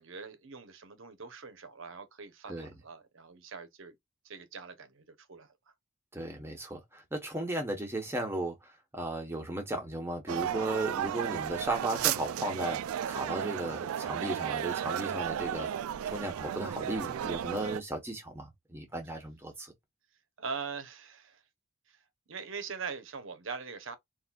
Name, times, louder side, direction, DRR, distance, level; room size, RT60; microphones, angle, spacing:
voice 1, 0.0-3.9 4.2-5.5 20.4-21.4 21.9-22.0 22.3-24.0, right 5 dB, 65° right, 0.8 m, -42 dB
voice 2, 6.1-12.8 13.1-15.7 16.1-19.7, right 1 dB, 10° right, 1.0 m, -35 dB
sound 1, 10.3-17.8, right 9 dB, 90° right, 0.3 m, -34 dB
4.0 x 2.5 x 2.3 m
head